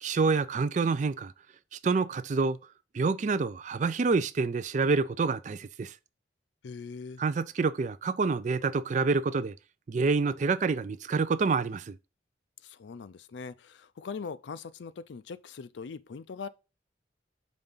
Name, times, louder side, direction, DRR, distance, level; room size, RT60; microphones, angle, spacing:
voice 1, 0.0-1.3 1.7-2.6 2.9-5.9 7.2-9.6 9.9-12.0, right 4 dB, 40° right, 0.3 m, -27 dB
voice 2, 6.6-7.2 12.6-16.5, left 5 dB, 75° left, 0.4 m, -41 dB
5.1 x 3.5 x 5.5 m
head